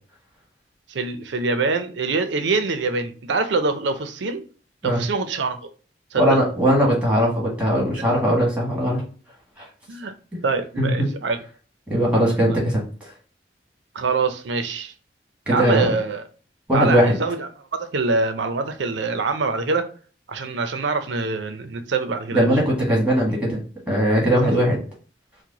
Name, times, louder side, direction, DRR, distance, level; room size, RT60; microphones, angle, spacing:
voice 1, 0.9-4.4 4.8-5.7 6.1-6.4 9.9-10.1 10.4-11.4 13.9-14.9 15.5-16.3 16.7-19.9 20.3-22.5 24.4-24.5, right 4 dB, 85° right, 0.6 m, -24 dB
voice 2, 6.1-9.0 9.6-9.7 10.8-11.1 11.9-13.1 15.5-15.9 16.7-17.2 22.3-23.6 23.9-24.8, equal, 5° right, 1.5 m, -20 dB
4.6 x 2.2 x 3.8 m
head